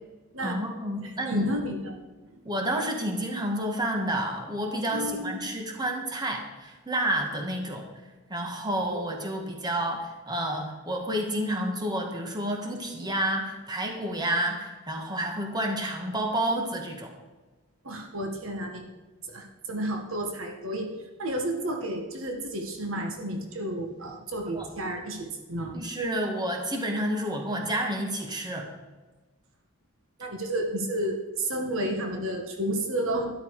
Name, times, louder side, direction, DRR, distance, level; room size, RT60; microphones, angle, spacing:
voice 1, 0.4-1.5 2.5-7.9 8.3-17.1 24.5-24.7 25.7-28.7, right 1 dB, 20° right, 2 dB, 1.9 m, -30 dB
voice 2, 1.0-2.0 4.9-5.4 8.9-9.2 17.8-18.8 19.2-20.9 21.2-25.8 30.2-33.3, right 1 dB, 65° right, 3 dB, 1.8 m, -31 dB
12.5 x 11.5 x 4.9 m, 1.2 s
head